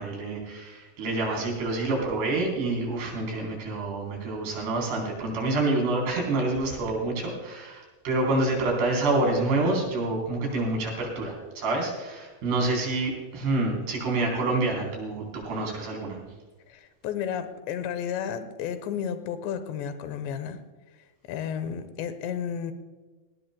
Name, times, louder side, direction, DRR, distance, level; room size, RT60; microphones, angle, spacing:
voice 1, 0.0-16.2, right 2 dB, 65° right, -1 dB, 5.8 m, -27 dB
voice 2, 16.7-20.6 21.3-22.7, left 8 dB, 85° left, 10 dB, 3.2 m, -32 dB
19.0 x 18.0 x 2.2 m, 1.3 s
omnidirectional pair, 5.0 m